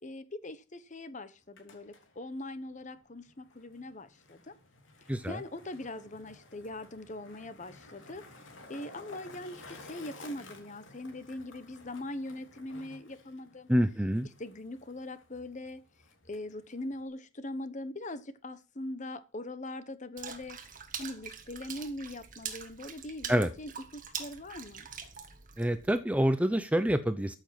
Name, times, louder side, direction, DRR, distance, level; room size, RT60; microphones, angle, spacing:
voice 1, 0.0-4.5 5.3-8.2 8.7-13.7 14.4-15.8 16.3-20.6 21.0-24.9, left 1 dB, 40° left, 13 dB, 1.1 m, -41 dB
Skateboard, 1.3-17.1, left 2 dB, 75° left, 3.2 m, -54 dB
voice 2, 5.1-5.4 13.7-14.3 23.3-23.5 25.6-27.4, equal, 5° right, 11 dB, 0.7 m, -27 dB
Water / Splash splatter, 20.2-26.0, right 7 dB, 40° right, 1.7 m, -43 dB
13.5 x 7.2 x 5.9 m, 0.32 s
head